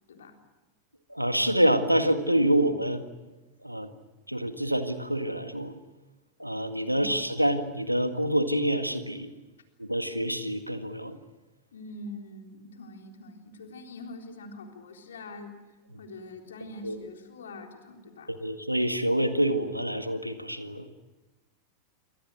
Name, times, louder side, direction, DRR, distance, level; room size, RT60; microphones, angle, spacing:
voice 1, 1.1-3.0 3.6-3.9 4.3-5.7 6.4-9.3 9.8-11.2 16.8-17.0 18.3-20.9, right 1 dB, 90° right, 9 dB, 1.8 m, -26 dB
voice 2, 11.7-15.5 16.0-18.3, left 2 dB, 65° left, 3 dB, 3.8 m, -44 dB
28.0 x 25.5 x 6.4 m, 1.2 s
figure-of-eight pair, 90°, 0 cm